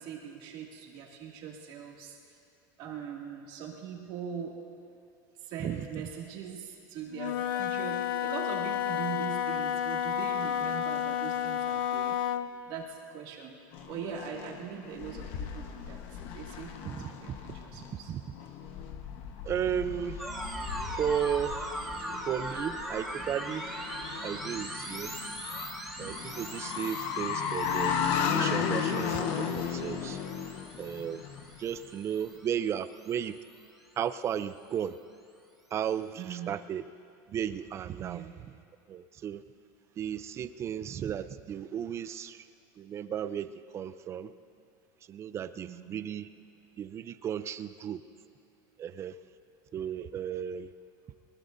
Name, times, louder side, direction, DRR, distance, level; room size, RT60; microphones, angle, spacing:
voice 1, 0.0-2.2 2.8-4.6 5.4-12.2 12.6-16.0 16.3-18.1 22.0-22.1 22.4-22.6 36.1-36.6 38.0-38.3 45.6-46.0, right 7 dB, 50° right, -1 dB, 2.4 m, -41 dB
Wind instrument woodwind instrument, 7.1-12.5, left 9 dB, 90° left, 0.8 m, -31 dB
sound 1, 13.7-31.8, left 7 dB, 55° left, 1.2 m, -35 dB
voice 2, 19.4-20.2 21.0-21.6 22.3-23.7 24.2-25.1 26.0-28.0 28.3-30.2 30.8-31.2 31.6-33.4 34.0-34.9 35.7-36.8 37.3-38.2 38.9-39.4 40.0-42.4 42.8-44.3 45.1-46.3 46.8-48.0 48.8-49.2 49.7-50.7, right 9 dB, 25° right, 12 dB, 0.5 m, -34 dB
sound 2, 20.2-33.7, right 1 dB, ahead, 1.6 m, -41 dB
23.0 x 20.0 x 2.7 m, 2.6 s
supercardioid pair, 150°, 11 cm